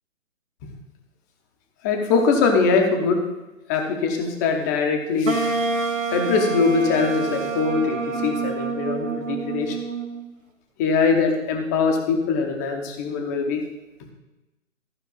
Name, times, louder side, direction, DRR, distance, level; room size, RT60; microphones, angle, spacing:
voice 1, 1.8-3.2 3.7-9.8 10.8-13.6, left 4 dB, 15° left, 3 dB, 0.8 m, -22 dB
Wind instrument woodwind instrument, 5.3-10.3, right 4 dB, 75° right, 1.6 m, -27 dB
14.0 x 5.3 x 5.3 m, 1.1 s
figure-of-eight pair, 135°, 40 cm